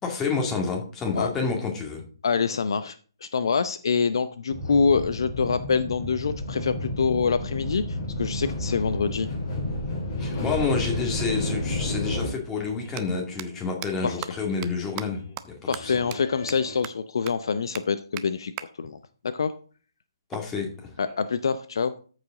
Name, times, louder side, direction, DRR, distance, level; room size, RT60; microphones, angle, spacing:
voice 1, 0.0-2.0 10.2-15.6 15.8-16.0 20.3-20.9, left 4 dB, 15° left, 1 dB, 2.2 m, -29 dB
voice 2, 2.2-3.0 3.2-9.3 14.0-14.2 15.7-19.0 19.2-19.5 21.0-21.9, left 5 dB, 65° left, 12 dB, 0.6 m, -25 dB
sound 1, 4.5-12.3, left 1 dB, 30° left, 3.7 m, -31 dB
sound 2, 10.2-13.8 14.1-15.4 15.6-16.8, left 2 dB, 45° left, 4.2 m, -44 dB
sound 3, 11.7-11.8 12.8-13.0 13.4-13.5 13.8-13.9 14.2-14.3 14.6-14.7 15.0-15.1 15.4-15.5 15.7-15.8 16.1-16.2 16.5-16.6 16.8-16.9 17.3-17.4 17.7-17.8 18.2-18.3 18.6-18.7 20.3-21.3, right 16 dB, 25° right, 0.6 m, -37 dB
13.5 x 5.0 x 3.8 m, 0.41 s
hypercardioid pair, 145°, 3 cm